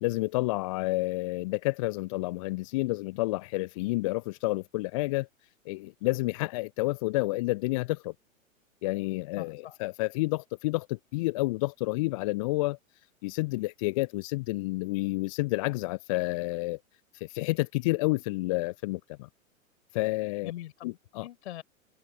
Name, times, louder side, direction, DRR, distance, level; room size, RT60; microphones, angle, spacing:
voice 1, 0.0-5.3 5.7-8.1 8.8-12.8 13.2-16.8 17.1-19.3 19.9-20.5 20.8-21.2, left 21 dB, 25° left, 0.5 m, -30 dB
voice 2, 9.4-9.8 20.4-21.6, left 13 dB, 50° left, 5.7 m, -42 dB
figure-of-eight pair, 105°, 41 cm